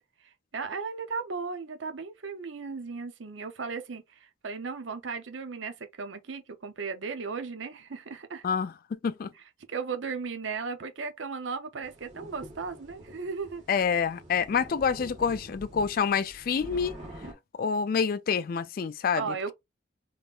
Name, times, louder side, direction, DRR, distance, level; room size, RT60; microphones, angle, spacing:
voice 1, 0.2-8.4 9.7-13.6 19.1-19.5, right 5 dB, 75° right, 0.7 m, -36 dB
sound 1, 11.8-17.3, equal, 35° right, 1.6 m, -46 dB
voice 2, 13.7-17.0 17.6-19.2, left 6 dB, 45° left, 0.3 m, -27 dB
3.5 x 3.1 x 2.4 m
head